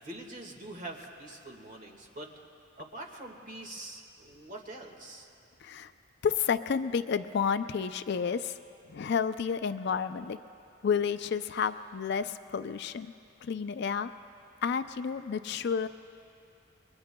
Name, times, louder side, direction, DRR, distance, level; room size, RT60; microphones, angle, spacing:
voice 1, 0.0-2.3 2.8-5.3, right 1 dB, 40° right, 1 dB, 1.7 m, -44 dB
voice 2, 5.6-5.9 6.2-8.6 8.9-10.4 10.8-13.1 13.4-14.1 14.6-15.9, left 6 dB, 60° left, 11 dB, 0.4 m, -30 dB
28.0 x 22.5 x 2.2 m, 2.6 s
head